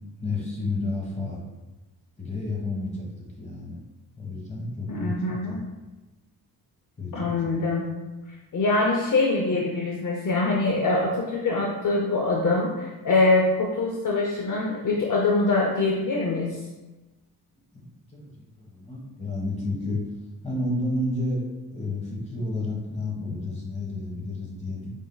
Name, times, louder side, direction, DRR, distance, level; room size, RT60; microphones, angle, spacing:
voice 1, 0.2-1.4 2.2-3.1 3.4-3.8 4.2-5.2 5.5-5.6 7.0-7.5 17.7-17.8 18.1-20.0 20.4-24.9, left 2 dB, 15° left, -2 dB, 1.3 m, -31 dB
voice 2, 4.9-5.6 7.1-7.9 8.5-16.5, left 3 dB, 50° left, -1 dB, 0.7 m, -24 dB
4.9 x 3.6 x 2.3 m, 1.1 s
cardioid pair, 85°, 40 cm